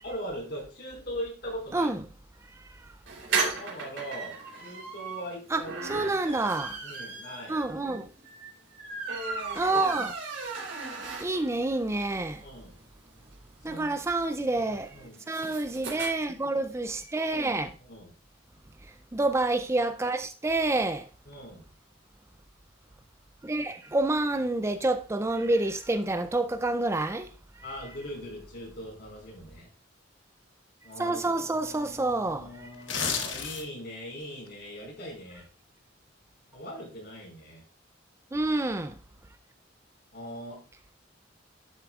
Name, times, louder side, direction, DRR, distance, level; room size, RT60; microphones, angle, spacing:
voice 1, 0.0-1.9 3.5-4.3 4.6-6.3 6.8-7.6 12.4-12.7 13.7-14.0 14.6-15.2 17.9-18.1 21.3-21.7 27.6-29.7 30.8-35.4 36.5-37.6 40.1-40.6, equal, 60° left, 5.0 m, -40 dB
sound 1, 3.1-11.6 12.0-12.1 12.4-12.5 12.7-16.1, right 4 dB, 85° right, 3.3 m, -35 dB
voice 2, 5.9-6.8 7.5-8.1 9.1-10.1 11.2-12.4 13.6-17.7 19.1-21.1 23.4-27.3 31.0-32.7 38.3-38.9, right 2 dB, 15° right, 0.4 m, -28 dB
sound 2, 32.7-33.9 34.3-34.5, left 6 dB, 80° left, 1.4 m, -31 dB
11.5 x 7.0 x 2.4 m
head